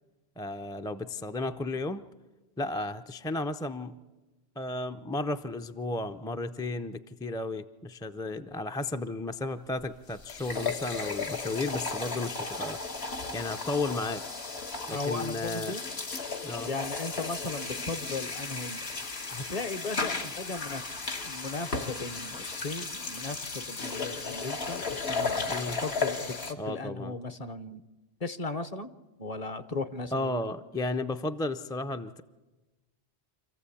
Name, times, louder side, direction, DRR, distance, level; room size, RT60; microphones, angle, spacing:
voice 1, 0.4-2.0 2.6-3.9 4.6-12.8 13.3-14.2 14.9-15.7 16.4-16.7 25.5-25.8 26.6-27.2 30.1-32.2, left 2 dB, 5° left, 7 dB, 0.3 m, -33 dB
sound 1, 9.8-9.9 10.2-26.5, left 4 dB, 70° left, 1.7 m, -35 dB
voice 2, 14.9-15.8 16.7-27.8 28.2-28.9 29.2-30.5, left 3 dB, 40° left, 11 dB, 0.8 m, -37 dB
26.5 x 14.5 x 8.5 m, 1.2 s
omnidirectional pair, 1.1 m